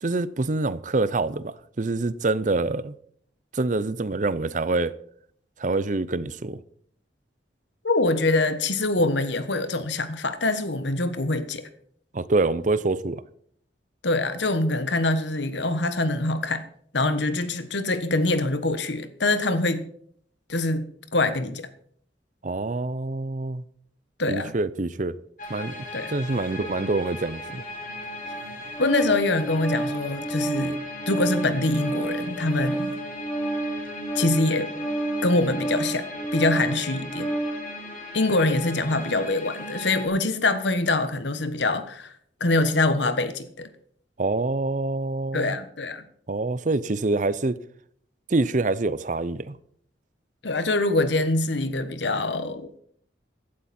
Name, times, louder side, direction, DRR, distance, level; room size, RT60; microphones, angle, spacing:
voice 1, 0.0-2.9 3.5-4.9 5.6-6.6 12.1-13.2 22.4-23.6 24.3-25.2 25.5-25.8 26.1-27.6 44.2-45.6 46.3-47.6 48.3-49.6, right 2 dB, 45° right, 0.6 m, -26 dB
voice 2, 7.8-11.7 14.0-16.6 16.9-19.9 20.5-21.7 24.2-24.5 25.9-26.1 28.8-30.8 31.1-32.9 34.1-34.7 35.2-36.1 36.3-37.3 38.1-42.1 42.4-43.7 45.3-46.0 50.4-52.7, left 2 dB, 80° left, 1.4 m, -24 dB
sound 1, 25.4-40.1, left 1 dB, 50° left, 4.6 m, -38 dB
Organ, 28.2-37.6, right 2 dB, 5° left, 2.3 m, -30 dB
15.5 x 12.0 x 4.4 m
head